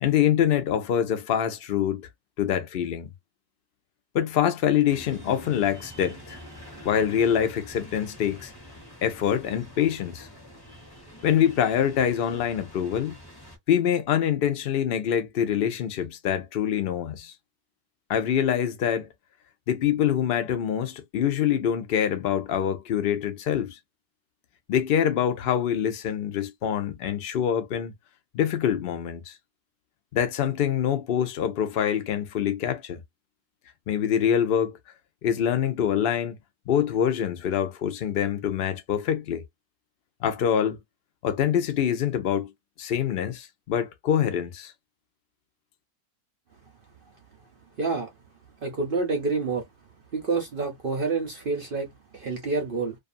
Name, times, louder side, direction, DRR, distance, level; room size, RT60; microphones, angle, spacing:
voice 1, 0.0-2.1 2.4-3.1 4.1-6.4 6.8-8.5 9.0-10.3 11.2-13.2 13.7-17.3 18.1-19.1 19.7-23.8 24.7-27.9 28.3-29.4 30.1-33.0 33.9-34.8 35.2-36.3 36.7-39.4 40.2-40.8 41.2-42.5 42.8-44.7, left 9 dB, 65° left, 0.5 m, -25 dB
sound 1, 4.9-13.6, equal, 20° left, 0.8 m, -46 dB
voice 2, 47.8-48.1 48.6-49.6 50.1-52.9, right 4 dB, 50° right, 0.7 m, -28 dB
2.5 x 2.4 x 2.5 m
omnidirectional pair, 1.6 m